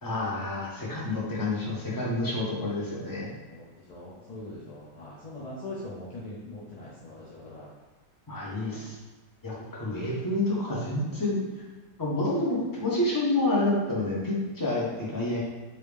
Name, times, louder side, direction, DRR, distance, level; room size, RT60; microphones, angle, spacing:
voice 1, 0.0-3.3 8.3-8.9 9.4-11.6 12.0-15.4, left 2 dB, 20° left, -6 dB, 0.6 m, -28 dB
voice 2, 3.9-7.7 8.7-8.9, left 1 dB, 60° left, -7 dB, 0.4 m, -41 dB
3.2 x 2.7 x 3.4 m, 1.3 s
omnidirectional pair, 1.5 m